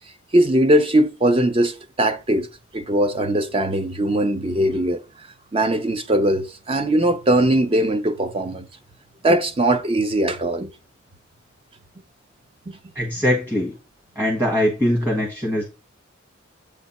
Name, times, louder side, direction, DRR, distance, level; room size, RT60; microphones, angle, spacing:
voice 1, 0.3-2.5 2.7-5.0 5.5-8.7 9.2-10.7 12.7-12.8, right 1 dB, 30° right, 0.6 m, -20 dB
voice 2, 12.9-13.7 14.1-15.6, equal, 10° right, 1.4 m, -21 dB
7.6 x 3.4 x 4.2 m
head